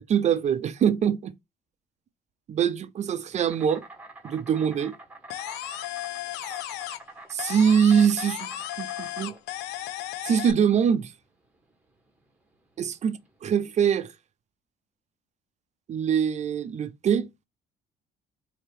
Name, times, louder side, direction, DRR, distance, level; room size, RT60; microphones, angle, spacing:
voice 1, 0.1-1.3 2.5-3.8 4.2-4.9 7.3-8.5 8.8-9.3 10.2-11.1 12.8-14.1 15.9-17.3, right 7 dB, 45° right, 0.6 m, -23 dB
Insect, 3.5-13.5, right 2 dB, 10° right, 1.2 m, -47 dB
sound 1, 5.3-7.1 7.4-10.5, left 14 dB, 85° left, 0.5 m, -35 dB
4.3 x 2.8 x 3.3 m
cardioid pair, 110°, 17 cm